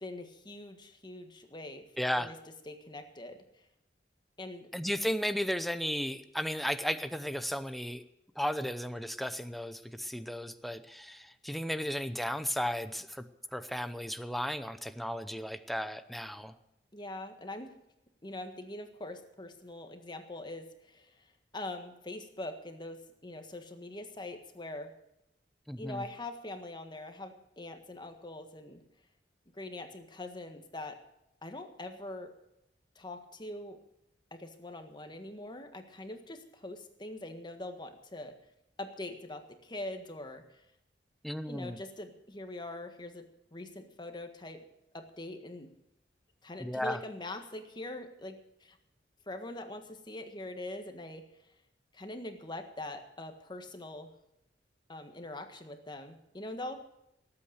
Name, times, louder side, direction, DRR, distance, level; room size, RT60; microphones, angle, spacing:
voice 1, 0.0-1.9 2.2-2.4 2.7-3.7 4.4-4.7 16.9-17.7 18.2-24.9 25.8-28.8 29.5-31.0 31.4-32.3 33.0-33.8 34.3-38.3 38.8-40.6 41.5-44.6 44.9-45.7 46.4-48.8 49.3-51.2 51.9-54.1 54.9-56.8, left 2 dB, 25° left, 6 dB, 1.6 m, -43 dB
voice 2, 2.0-2.3 4.7-8.0 8.4-13.2 13.5-16.5 25.7-26.0 41.2-41.8 46.6-47.0, equal, ahead, 10 dB, 0.7 m, -34 dB
18.5 x 8.7 x 6.5 m, 0.84 s
head